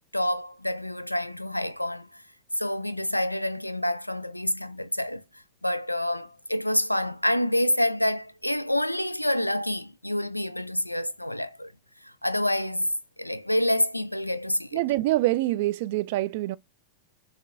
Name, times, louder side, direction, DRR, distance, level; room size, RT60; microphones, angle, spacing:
voice 1, 0.1-2.2 2.6-5.2 5.6-11.7 12.0-14.8, left 1 dB, 90° left, 0.3 m, -27 dB
voice 2, 14.7-16.6, right 17 dB, 50° right, 0.3 m, -25 dB
6.5 x 2.4 x 2.6 m
figure-of-eight pair, 90°, 0 cm